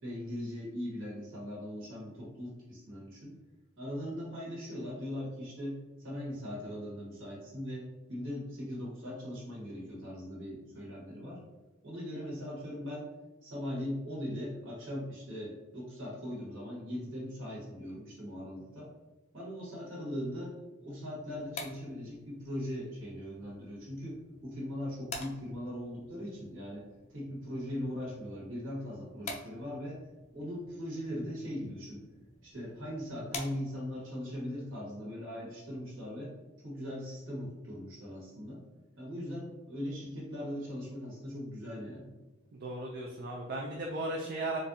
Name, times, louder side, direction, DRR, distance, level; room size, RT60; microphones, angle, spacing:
voice 1, 0.0-3.3 3.8-11.4 11.8-13.1 13.4-18.9 19.3-30.0 30.3-32.0 32.4-36.3 36.6-38.6 39.0-42.1, equal, 65° right, -5 dB, 1.4 m, -40 dB
sound 1, 21.2-34.1, left 3 dB, 35° left, 0.4 m, -49 dB
voice 2, 42.5-44.6, right 2 dB, 50° right, -1 dB, 0.4 m, -36 dB
3.8 x 2.5 x 2.7 m, 1.1 s
head